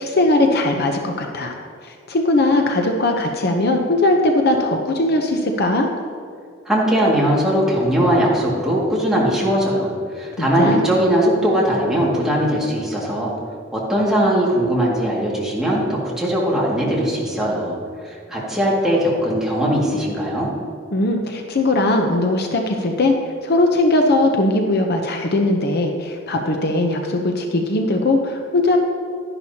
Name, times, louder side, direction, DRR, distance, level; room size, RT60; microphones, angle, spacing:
voice 1, 0.0-1.5 1.8-5.9 10.4-10.8 20.9-23.1 23.4-28.8, left 2 dB, 50° left, 3 dB, 0.7 m, -19 dB
voice 2, 6.7-13.3 13.7-17.8 18.0-20.5, equal, 5° right, -6 dB, 2.1 m, -20 dB
11.5 x 11.0 x 2.8 m, 2.3 s
head